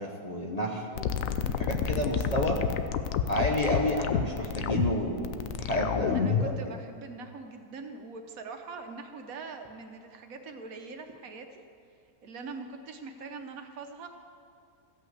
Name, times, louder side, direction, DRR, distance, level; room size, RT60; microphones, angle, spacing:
voice 1, 0.0-2.6 3.3-6.5, equal, 30° left, 0 dB, 0.8 m, -30 dB
sound 1, 1.0-6.6, left 8 dB, 70° left, 0.9 m, -29 dB
voice 2, 6.1-11.6 12.2-14.1, right 4 dB, 65° right, 5 dB, 1.2 m, -42 dB
14.5 x 5.7 x 7.9 m, 2.3 s
omnidirectional pair, 1.6 m